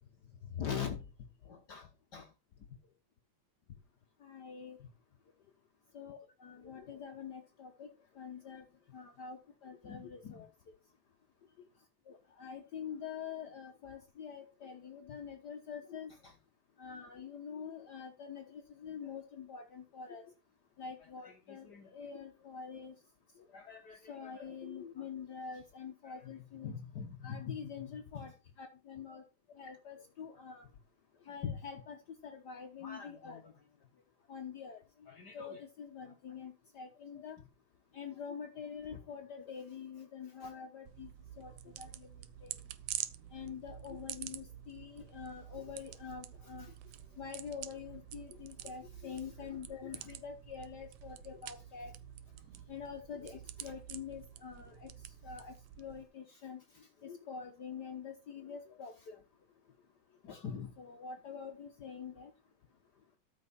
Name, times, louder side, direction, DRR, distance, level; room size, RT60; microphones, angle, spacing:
voice 1, 0.5-1.0 1.4-1.9 2.1-2.3 4.2-4.8 5.9-7.9 8.2-8.6 8.9-10.7 12.1-16.3 16.8-20.3 20.8-22.9 23.5-28.3 28.6-29.2 29.5-30.7 31.3-32.0 32.2-33.4 34.3-37.4 37.9-41.1 41.4-42.1 42.4-42.6 43.3-46.7 47.2-51.9 52.7-54.9 55.2-59.2 60.2-62.3, left 7 dB, 70° left, 0.9 m, -45 dB
sound 1, 40.9-56.0, right 12 dB, 75° right, 1.6 m, -47 dB
13.5 x 6.1 x 4.2 m
omnidirectional pair, 3.4 m